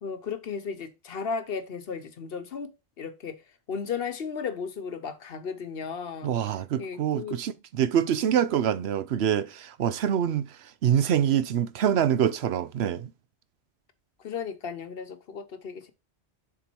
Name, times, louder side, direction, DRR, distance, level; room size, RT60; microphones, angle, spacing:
voice 1, 0.0-3.4 3.7-6.3 6.8-7.3 14.2-15.9, left 6 dB, 60° left, 1.0 m, -35 dB
voice 2, 6.2-10.6 10.8-13.1, right 9 dB, 70° right, 0.8 m, -25 dB
7.1 x 3.8 x 4.4 m
omnidirectional pair, 1.2 m